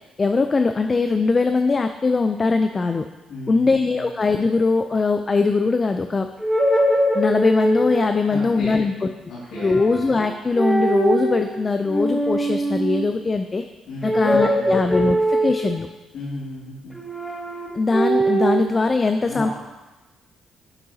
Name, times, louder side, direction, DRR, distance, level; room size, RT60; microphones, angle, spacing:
voice 1, 0.2-3.1 3.5-6.3 7.1-8.9 9.6-13.6 14.0-15.9 17.7-19.5, left 3 dB, 30° left, 7 dB, 0.3 m, -21 dB
voice 2, 3.3-4.0 8.2-8.9 9.3-9.8 13.9-14.8 16.1-17.0 19.3-19.5, left 1 dB, 80° left, -9 dB, 2.1 m, -34 dB
sound 1, 6.4-8.2 9.5-10.3 10.5-11.5 11.9-13.1 14.0-15.9 16.9-18.6, right 1 dB, ahead, 1.0 m, -22 dB
8.5 x 6.8 x 2.7 m, 1.1 s
cardioid pair, 90°, 0 cm